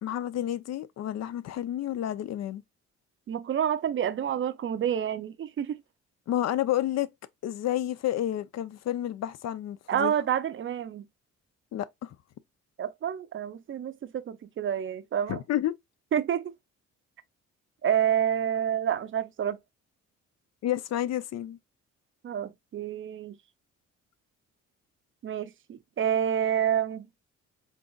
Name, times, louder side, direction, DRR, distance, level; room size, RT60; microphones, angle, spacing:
voice 1, 0.0-2.6 6.3-7.1 7.4-10.1 11.7-12.2 15.3-15.7 20.6-21.6, left 12 dB, 60° left, 0.5 m, -30 dB
voice 2, 3.3-5.8 9.9-11.1 12.8-15.4 16.1-16.5 17.8-19.6 22.2-23.4 25.2-27.1, right 9 dB, 40° right, 0.5 m, -28 dB
3.9 x 3.7 x 2.2 m
cardioid pair, 90°, 30 cm